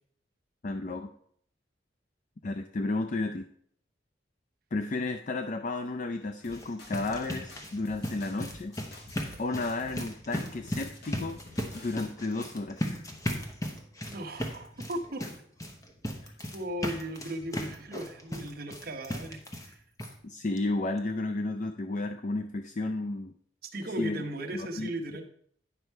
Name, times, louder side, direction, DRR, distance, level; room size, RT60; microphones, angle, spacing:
voice 1, 0.6-1.1 2.4-3.5 4.7-8.8 9.4-11.4 11.7-13.0 16.2-16.3 20.2-23.3 24.0-24.2 24.5-24.9, left 2 dB, 40° left, 5 dB, 0.4 m, -32 dB
sound 1, 6.4-7.2 7.5-10.1 10.3-12.0, left 2 dB, 60° left, 1.6 m, -50 dB
sound 2, 6.4-19.7 20.0-20.1 20.6-20.7 21.0-21.1, left 1 dB, 20° left, 0.9 m, -37 dB
voice 2, 14.1-15.3 16.5-19.8 23.6-25.3, right 1 dB, 55° right, 2 dB, 1.0 m, -37 dB
9.5 x 5.5 x 4.5 m, 0.64 s
head